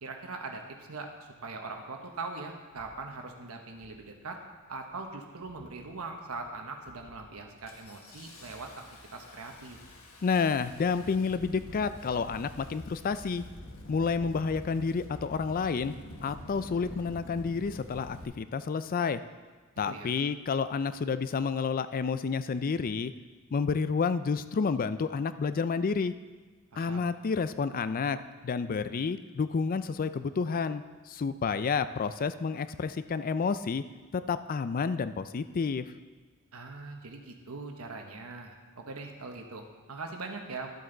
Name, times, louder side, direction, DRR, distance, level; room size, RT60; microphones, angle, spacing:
voice 1, 0.0-1.1 1.4-4.4 4.7-8.7 9.1-9.8 19.9-20.1 26.7-27.1 36.5-40.7, right 3 dB, 85° right, 3 dB, 1.0 m, -41 dB
Engine starting, 2.7-3.0 3.7-4.1 4.4-5.0 5.4-5.9 6.3-6.5 6.9-18.2, left 1 dB, 75° left, 1.3 m, -48 dB
voice 2, 10.2-13.4 13.9-15.9 16.2-19.2 19.8-23.1 23.5-26.1 26.8-28.2 28.4-33.8 34.1-35.8, left 5 dB, 40° left, 13 dB, 0.4 m, -30 dB
12.0 x 7.8 x 3.9 m, 1.4 s
head